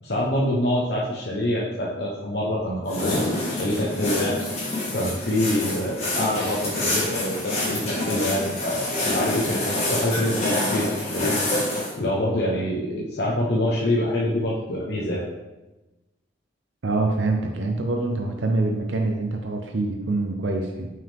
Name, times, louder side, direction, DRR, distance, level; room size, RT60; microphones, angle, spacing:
voice 1, 0.0-4.4 4.9-9.6 9.9-11.4 12.0-15.2, left 1 dB, 60° left, -5 dB, 0.8 m, -25 dB
sound 1, 2.9-11.9, left 1 dB, 35° left, 1.7 m, -27 dB
voice 2, 16.8-20.9, right 2 dB, 80° right, 2 dB, 0.6 m, -25 dB
6.1 x 4.7 x 3.4 m, 1.1 s
head